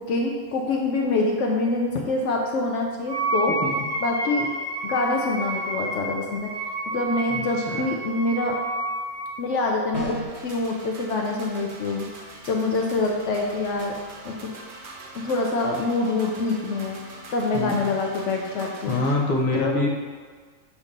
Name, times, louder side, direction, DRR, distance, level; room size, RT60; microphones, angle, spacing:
voice 1, 0.0-3.6 4.0-4.5 4.8-6.5 6.9-8.6 9.4-12.0 12.4-14.0 14.2-14.3 15.1-17.0 17.3-19.0 19.5-19.8, left 2 dB, 70° left, 0 dB, 0.9 m, -25 dB
Wind instrument woodwind instrument, 3.1-9.4, right 2 dB, 80° right, 1.9 m, -29 dB
voice 2, 7.3-7.9 17.5-17.8 18.9-19.9, left 2 dB, 40° left, -2 dB, 0.8 m, -25 dB
sound 1, 9.9-10.5, right 1 dB, 25° right, 1.5 m, -33 dB
sound 2, 10.3-19.1, right 2 dB, 50° right, 0.8 m, -43 dB
7.1 x 2.8 x 5.1 m, 1.5 s
omnidirectional pair, 1.4 m